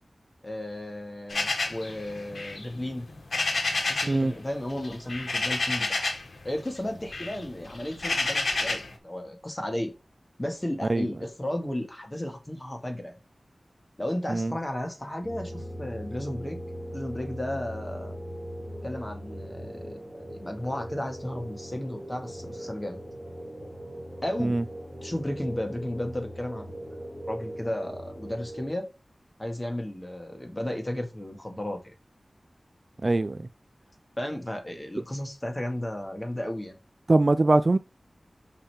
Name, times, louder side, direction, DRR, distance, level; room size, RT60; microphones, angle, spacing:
voice 1, 0.4-3.1 3.9-6.0 6.4-9.9 10.4-13.2 14.0-16.6 16.9-18.1 18.8-23.0 24.2-24.6 25.0-26.8 27.3-28.9 29.4-31.9 34.2-36.8, left 1 dB, 25° left, 1.9 m, -34 dB
sound 1, 1.3-4.2 4.5-6.3 6.7-8.9, left 3 dB, 80° left, 1.4 m, -30 dB
sound 2, 15.2-28.7, equal, ahead, 3.1 m, -40 dB
voice 2, 33.0-33.4 37.1-37.8, right 2 dB, 45° right, 0.4 m, -22 dB
5.7 x 5.1 x 4.4 m
wide cardioid pair, 75°, 0 cm